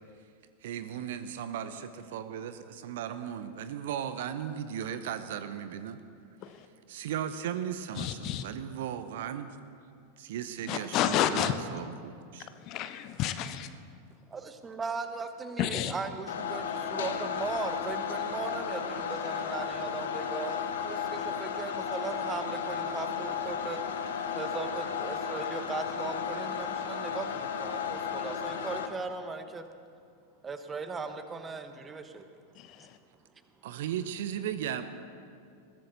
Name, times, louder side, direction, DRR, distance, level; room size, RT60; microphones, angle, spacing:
voice 1, 0.6-6.0 6.9-9.6 10.2-12.5 33.6-34.8, right 9 dB, 55° right, 11 dB, 0.8 m, -36 dB
voice 2, 8.0-8.4 10.7-11.5 12.6-13.7 15.6-15.9 32.6-33.0, left 11 dB, 40° left, 10 dB, 0.8 m, -30 dB
voice 3, 14.3-20.6 20.8-23.8 24.3-29.6 30.4-32.3, right 4 dB, 20° right, 9 dB, 1.1 m, -38 dB
sound 1, 16.3-28.9, left 7 dB, 60° left, 1.2 m, -34 dB
21.0 x 15.0 x 4.1 m, 2.3 s
figure-of-eight pair, 90°, 0 cm